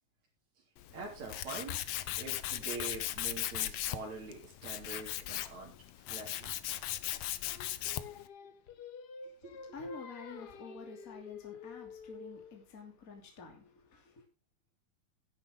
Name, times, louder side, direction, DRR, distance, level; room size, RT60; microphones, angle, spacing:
Tools, 0.8-8.2, left 13 dB, 70° left, 1.7 m, -38 dB
voice 1, 0.9-1.8 2.1-6.6 9.7-9.9, right 3 dB, 70° right, 4.8 m, -45 dB
Singing, 7.4-12.6, left 5 dB, 90° left, 0.8 m, -49 dB
voice 2, 9.7-14.2, left 4 dB, 30° left, 3.0 m, -49 dB
12.5 x 11.0 x 3.7 m
omnidirectional pair, 3.3 m